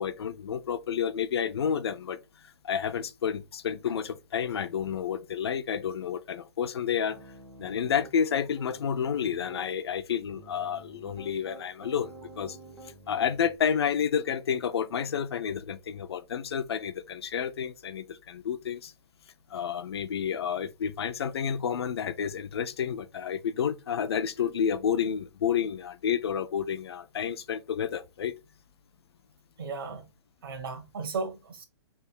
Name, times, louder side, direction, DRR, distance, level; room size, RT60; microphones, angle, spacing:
voice 1, 0.0-2.2 2.6-7.2 7.6-12.6 13.1-18.9 19.5-28.3, left 8 dB, 65° left, 0.6 m, -30 dB
Piano, 7.1-8.1 8.5-9.7 10.3-13.6, right 2 dB, 5° right, 0.5 m, -48 dB
voice 2, 29.6-30.0 30.4-31.6, right 4 dB, 55° right, 1.2 m, -35 dB
3.5 x 2.9 x 4.3 m
hypercardioid pair, 180°, 15 cm